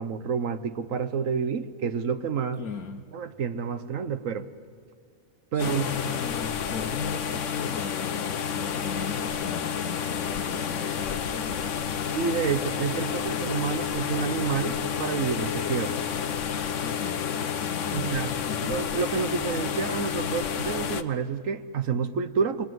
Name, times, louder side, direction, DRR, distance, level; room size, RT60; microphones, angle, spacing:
voice 1, 0.0-2.6 3.1-4.5 5.5-5.9 12.1-16.0 17.9-18.3 18.6-22.6, right 6 dB, 65° right, 11 dB, 1.3 m, -29 dB
voice 2, 2.6-3.1 5.5-12.2 15.9-16.3 16.8-18.8, left 6 dB, 85° left, 2 dB, 1.4 m, -39 dB
sound 1, 5.6-21.0, left 7 dB, 60° left, 1.2 m, -30 dB
28.5 x 24.5 x 7.7 m, 2.1 s
omnidirectional pair, 1.5 m